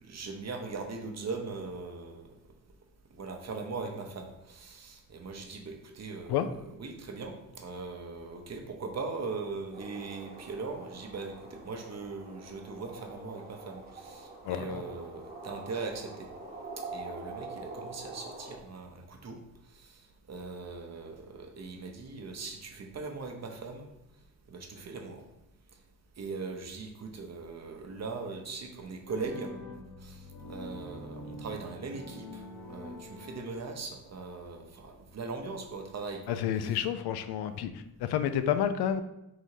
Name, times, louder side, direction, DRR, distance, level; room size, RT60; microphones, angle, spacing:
voice 1, 0.0-2.3 3.1-6.4 6.8-16.3 16.9-19.4 19.7-19.9 20.3-23.9 24.5-25.2 26.2-29.5 30.0-30.2 30.5-32.4 32.7-36.4, right 4 dB, 45° right, 3 dB, 0.9 m, -40 dB
sound 1, 9.7-18.6, right 3 dB, 25° right, 1.1 m, -45 dB
voice 2, 14.4-14.8 36.3-39.0, left 9 dB, 85° left, 10 dB, 0.5 m, -30 dB
Orchestra (Church Organ Practice), 29.1-34.0, left 1 dB, 55° left, 1.0 m, -45 dB
3.9 x 2.7 x 4.7 m, 0.88 s
cardioid pair, 75°, 38 cm